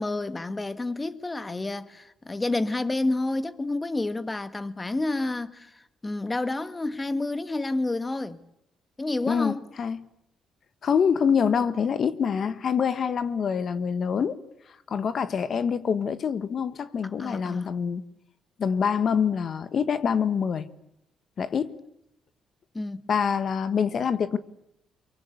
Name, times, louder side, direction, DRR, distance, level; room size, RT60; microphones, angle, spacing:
voice 1, 0.0-8.4 9.0-9.7 17.2-17.7 22.7-23.0, left 2 dB, 20° left, 1.7 m, -29 dB
voice 2, 9.2-10.1 10.8-14.4 14.9-18.0 18.6-20.7 21.4-21.8 23.1-24.4, left 7 dB, 55° left, 1.6 m, -25 dB
24.5 x 23.5 x 8.2 m
cardioid pair, 90°, 0 cm